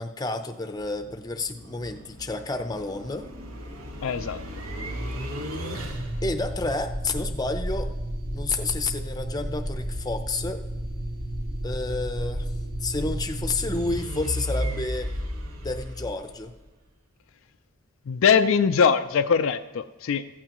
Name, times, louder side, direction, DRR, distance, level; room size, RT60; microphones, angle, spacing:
voice 1, 0.0-3.3 5.6-5.9 6.2-7.9 8.3-10.6 11.6-12.5 12.8-15.1 15.6-16.5, left 3 dB, 20° left, 7 dB, 0.6 m, -30 dB
sound 1, 0.8-16.7, equal, 80° right, 1.5 m, -33 dB
voice 2, 4.0-4.4 18.1-20.3, left 6 dB, 65° left, 9 dB, 0.4 m, -22 dB
16.0 x 15.0 x 3.0 m, 1.1 s
head